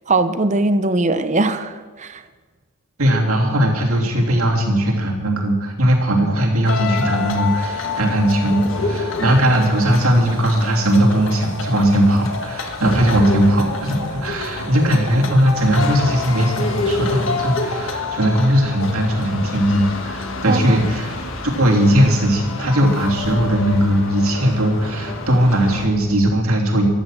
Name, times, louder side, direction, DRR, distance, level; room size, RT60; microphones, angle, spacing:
voice 1, 0.1-2.2 20.5-20.8, right 2 dB, 30° right, 11 dB, 0.7 m, -20 dB
voice 2, 3.0-21.1 21.6-26.9, equal, 75° right, -1 dB, 3.2 m, -18 dB
sound 1, 6.6-25.9, left 3 dB, 60° left, 1.8 m, -27 dB
14.0 x 12.0 x 7.6 m, 1.4 s
head